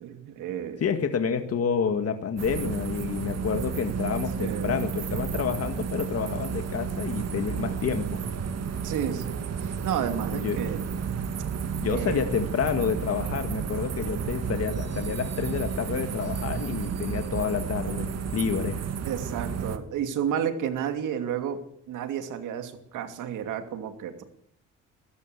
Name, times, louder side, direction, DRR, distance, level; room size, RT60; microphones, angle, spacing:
voice 1, 0.0-0.8 4.4-4.7 8.8-10.9 11.9-12.2 19.0-24.2, right 9 dB, 85° right, 7 dB, 2.8 m, -31 dB
voice 2, 0.8-8.2 10.3-10.7 11.8-18.8, left 6 dB, 55° left, 7 dB, 1.9 m, -29 dB
sound 1, 2.4-19.8, right 6 dB, 55° right, 2.5 m, -32 dB
22.0 x 14.5 x 8.2 m, 0.73 s
cardioid pair, 90°, 30 cm